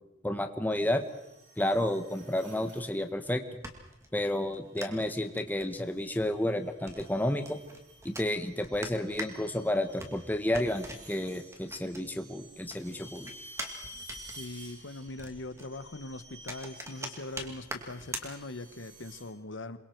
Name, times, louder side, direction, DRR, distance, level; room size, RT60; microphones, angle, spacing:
voice 1, 0.2-1.0 1.6-3.6 4.1-7.6 8.0-13.3, left 1 dB, 10° left, 7 dB, 1.3 m, -31 dB
sound 1, 0.7-3.1 4.4-4.8 5.7-19.2, equal, 60° right, 7.7 m, -53 dB
sound 2, 3.2-12.4 12.7-18.9, right 1 dB, 15° right, 2.5 m, -44 dB
voice 2, 14.4-19.8, left 2 dB, 75° left, 12 dB, 1.2 m, -41 dB
27.5 x 22.5 x 4.6 m, 0.88 s
head